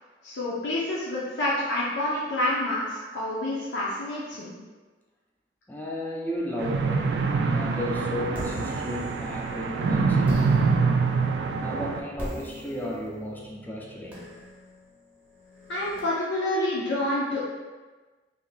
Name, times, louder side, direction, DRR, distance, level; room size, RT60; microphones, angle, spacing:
voice 1, 0.2-4.5 15.7-17.5, left 1 dB, 90° left, -7 dB, 0.6 m, -28 dB
voice 2, 5.7-10.7 11.2-14.3, left 1 dB, 10° left, -2 dB, 0.4 m, -34 dB
sound 1, 6.6-12.0, right 4 dB, 70° right, 0.3 m, -25 dB
sound 2, 8.3-9.7 10.2-16.0, equal, 5° right, 0.8 m, -41 dB
2.7 x 2.6 x 4.0 m, 1.3 s
head